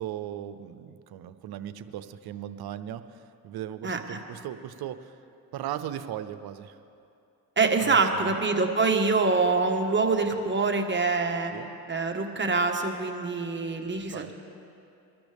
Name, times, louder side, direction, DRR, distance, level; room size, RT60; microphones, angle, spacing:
voice 1, 0.0-5.2 5.5-6.8 7.8-8.3 11.5-11.7 14.1-14.3, right 11 dB, 75° right, 12 dB, 0.7 m, -37 dB
voice 2, 3.8-4.2 7.6-11.5 11.9-14.3, right 4 dB, 30° right, 3 dB, 1.6 m, -25 dB
23.0 x 13.0 x 3.5 m, 2.7 s
supercardioid pair, 65°, 38 cm